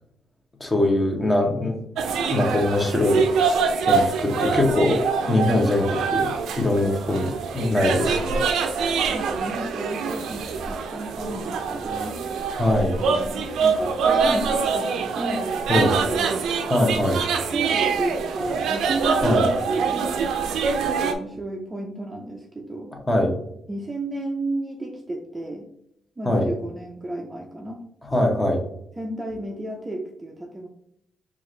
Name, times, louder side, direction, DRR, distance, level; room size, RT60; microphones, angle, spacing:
voice 1, 0.6-1.8 2.3-3.2 3.9-5.0 5.3-6.3 6.6-8.4 12.6-13.0 15.7-15.9 16.7-17.2 19.2-19.4 23.1-23.3 26.2-26.5 28.1-28.6, left 1 dB, 15° left, 1 dB, 0.9 m, -22 dB
sound 1, 2.0-21.1, right 5 dB, 85° right, 0.4 m, -24 dB
voice 2, 9.1-12.2 13.0-16.2 17.4-20.2 20.8-22.9 23.7-25.7 26.2-27.8 29.0-30.7, right 2 dB, 20° right, 1 dB, 0.5 m, -32 dB
4.6 x 2.5 x 3.2 m, 0.77 s
cardioid pair, 100°, 0 cm